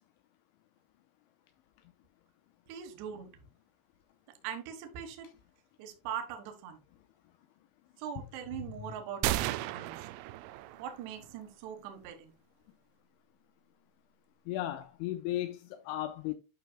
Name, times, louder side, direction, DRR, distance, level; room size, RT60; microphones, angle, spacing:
voice 1, 2.7-3.3 4.4-5.3 5.8-6.8 8.0-10.0 10.8-12.3, right 8 dB, 70° right, 3.1 m, -41 dB
voice 2, 8.6-9.0 14.5-16.3, left 13 dB, 80° left, 2.9 m, -36 dB
sound 1, 9.2-11.1, right 14 dB, 90° right, 3.2 m, -34 dB
11.5 x 5.7 x 2.2 m
omnidirectional pair, 5.8 m